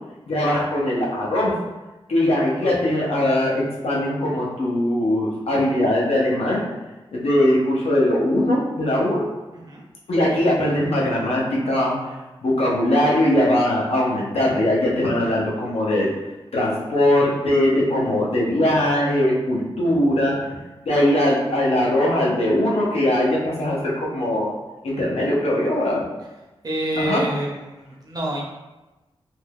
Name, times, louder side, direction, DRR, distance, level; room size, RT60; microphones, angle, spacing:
voice 1, 0.3-1.5 2.1-6.6 7.1-9.2 10.1-12.1 12.4-16.1 16.5-20.6 20.8-24.5 24.8-26.0 27.0-27.2, left 1 dB, 75° left, -4 dB, 0.8 m, -20 dB
voice 2, 9.5-9.8 26.6-28.5, right 1 dB, 40° right, -3 dB, 0.7 m, -28 dB
2.7 x 2.2 x 3.3 m, 1.1 s
wide cardioid pair, 100°, 10 cm